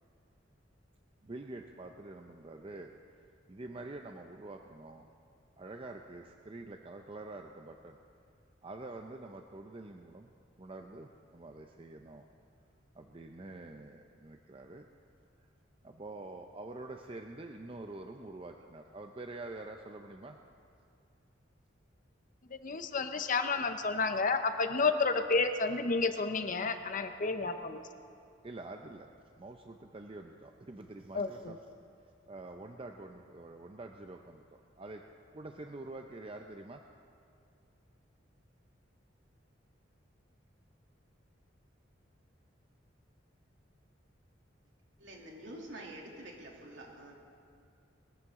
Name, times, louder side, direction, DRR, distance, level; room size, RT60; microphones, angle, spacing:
voice 1, 1.2-2.9 3.5-5.1 5.6-8.0 8.6-10.3 10.6-12.3 12.9-14.9 15.8-20.4 28.4-29.1 29.4-31.6 32.3-34.4 34.8-35.1 35.3-36.8, right 2 dB, 30° right, 4 dB, 0.6 m, -46 dB
voice 2, 22.6-27.8 31.1-31.6, left 4 dB, 45° left, 8 dB, 0.8 m, -31 dB
voice 3, 45.0-47.1, right 1 dB, 70° right, -2 dB, 2.8 m, -47 dB
21.5 x 14.0 x 3.7 m, 2.4 s
head